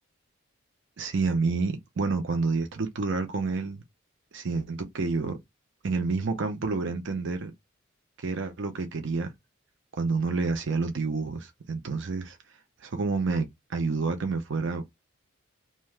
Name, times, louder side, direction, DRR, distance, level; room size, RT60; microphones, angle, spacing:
voice 1, 1.0-3.8 4.3-5.4 5.8-7.5 8.2-9.3 10.0-12.4 12.8-14.9, right 4 dB, 60° right, 0.5 m, -29 dB
2.7 x 2.2 x 3.2 m
head